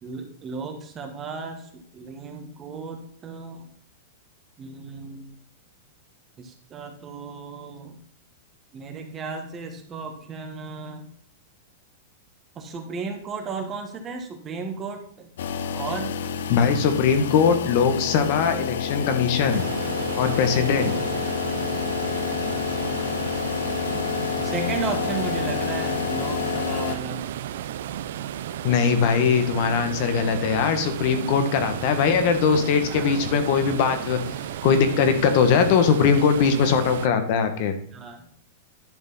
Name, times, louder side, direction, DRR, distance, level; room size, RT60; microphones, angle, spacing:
voice 1, 0.0-3.7 4.6-5.3 6.4-8.0 8.7-11.1 12.5-15.3 15.7-16.2 24.4-27.2 32.9-33.1 37.9-38.3, right 4 dB, 20° right, 4 dB, 1.4 m, -34 dB
sound 1, 15.4-27.0, left 7 dB, 85° left, 0.9 m, -28 dB
voice 2, 16.5-19.6 20.2-20.9 28.6-34.2 34.6-37.8, left 6 dB, 45° left, 8 dB, 1.4 m, -21 dB
sound 2, 19.5-37.1, right 11 dB, 70° right, 0.5 m, -33 dB
11.0 x 5.3 x 4.0 m, 0.63 s
supercardioid pair, 155°, 0 cm